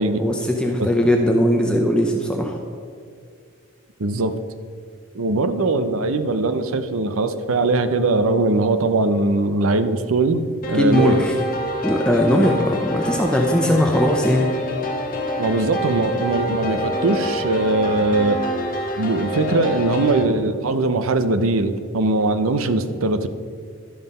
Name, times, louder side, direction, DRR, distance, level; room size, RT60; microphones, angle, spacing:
voice 1, 0.2-2.6 10.8-11.4 11.8-14.5, equal, 5° left, 1 dB, 0.6 m, -19 dB
voice 2, 4.0-4.3 5.1-10.4 10.7-11.2 15.4-18.4 19.0-23.3, right 2 dB, 75° right, 10 dB, 0.6 m, -20 dB
sound 1, 10.6-20.2, left 1 dB, 40° left, 1.1 m, -26 dB
12.5 x 5.6 x 5.4 m, 2.2 s
head